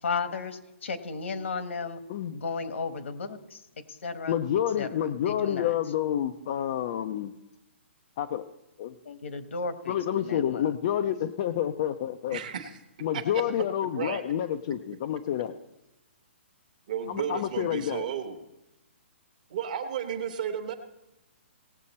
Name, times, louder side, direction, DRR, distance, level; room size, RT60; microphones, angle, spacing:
voice 1, 0.0-2.0 2.3-4.4 4.8-5.7 9.0-10.7, left 4 dB, 70° left, 10 dB, 1.2 m, -34 dB
voice 2, 4.3-7.3 8.2-8.4 8.8-8.9 9.9-12.4 13.0-15.5 17.1-18.1, left 10 dB, 25° left, 7 dB, 0.3 m, -29 dB
voice 3, 12.3-12.8 13.1-13.4 13.9-14.2 16.9-18.4 19.5-20.7, right 8 dB, 35° right, 7 dB, 1.0 m, -33 dB
18.0 x 7.5 x 4.2 m, 0.94 s
hypercardioid pair, 175°, 7 cm